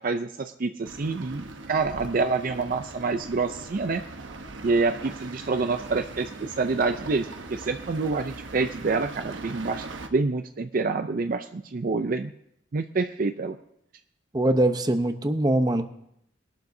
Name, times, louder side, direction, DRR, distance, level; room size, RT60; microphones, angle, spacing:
voice 1, 0.0-4.0 4.6-12.3 12.7-13.6, right 4 dB, 50° right, 8 dB, 0.5 m, -27 dB
sound 1, 0.8-10.1, right 3 dB, 80° right, 1.0 m, -41 dB
voice 2, 14.3-15.9, right 1 dB, 20° right, 8 dB, 0.8 m, -22 dB
21.5 x 12.0 x 2.7 m, 0.75 s
head